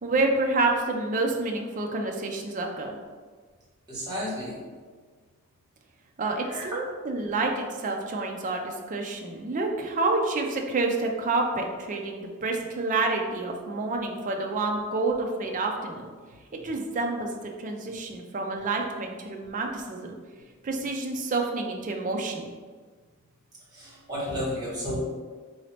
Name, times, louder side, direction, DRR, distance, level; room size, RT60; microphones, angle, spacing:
voice 1, 0.0-3.0 6.2-16.1 16.6-20.1 20.6-22.5, right 3 dB, 35° right, 2 dB, 0.4 m, -28 dB
voice 2, 3.9-4.6 6.4-6.7 23.7-25.0, equal, 20° right, -9 dB, 1.4 m, -32 dB
3.9 x 2.7 x 3.2 m, 1.5 s
head